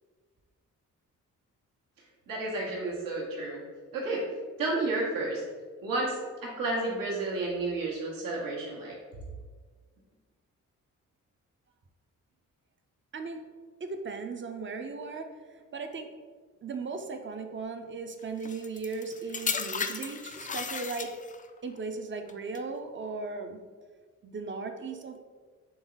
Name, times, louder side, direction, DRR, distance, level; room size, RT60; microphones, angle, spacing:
voice 1, 2.3-3.6 3.9-4.2 4.6-5.4 5.8-8.9, right 2 dB, 75° right, -4 dB, 1.3 m, -31 dB
voice 2, 13.8-15.3 15.7-16.1 16.6-21.1 21.6-23.6 24.2-25.2, right 4 dB, 35° right, 6 dB, 0.6 m, -37 dB
sound 1, 18.4-21.5 22.3-22.6, left 5 dB, 25° left, 0.4 m, -35 dB
3.9 x 3.4 x 3.9 m, 1.5 s
supercardioid pair, 60°, 34 cm